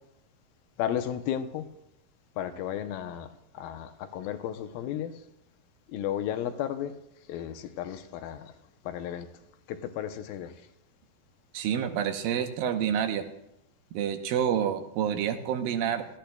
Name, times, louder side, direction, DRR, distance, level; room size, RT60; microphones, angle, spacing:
voice 1, 0.8-1.7 2.4-5.1 5.9-6.9 7.3-8.5 8.9-9.3 9.7-10.5, left 10 dB, 85° left, 2.6 m, -33 dB
voice 2, 11.5-13.2 13.9-16.1, right 9 dB, 85° right, 2.6 m, -28 dB
19.0 x 15.0 x 2.3 m
omnidirectional pair, 4.1 m